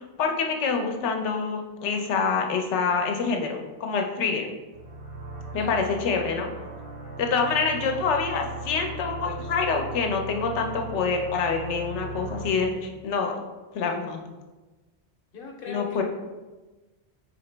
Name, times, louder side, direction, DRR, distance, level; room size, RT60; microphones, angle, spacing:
voice 1, 0.0-4.5 5.5-6.5 7.2-13.3 13.7-14.2 15.7-16.0, left 5 dB, 85° left, 3 dB, 0.9 m, -26 dB
sound 1, 4.7-12.5, right 3 dB, 40° right, 0.5 m, -38 dB
voice 2, 5.5-5.9 15.3-16.0, left 3 dB, 55° left, 1 dB, 0.9 m, -39 dB
4.5 x 2.9 x 3.2 m, 1.2 s
omnidirectional pair, 1.2 m